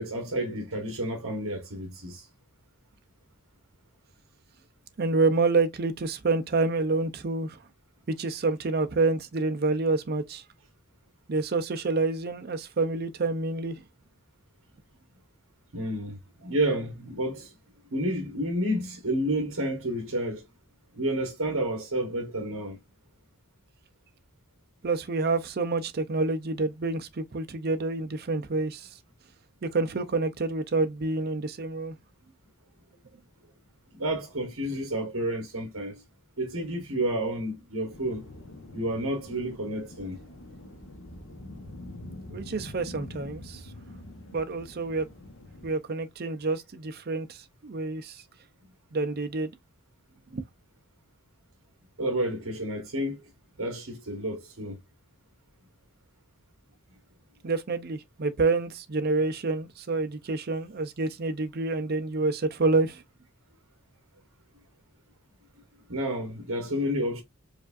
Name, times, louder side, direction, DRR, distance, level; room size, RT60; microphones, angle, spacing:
voice 1, 0.0-2.3 15.7-17.5 17.9-20.4 20.9-22.8 33.9-36.0 36.4-38.2 38.7-40.2 52.0-53.3 53.6-54.8 65.9-67.2, right 1 dB, 65° right, 1.1 m, -30 dB
voice 2, 5.0-7.6 8.1-10.4 11.3-13.8 24.8-28.9 29.6-32.0 42.3-43.6 44.3-45.1 45.6-48.2 48.9-49.5 50.3-50.4 57.4-63.0, right 3 dB, 45° right, 0.5 m, -28 dB
sound 1, 37.9-45.7, left 1 dB, 60° left, 0.9 m, -45 dB
4.9 x 2.5 x 2.4 m
head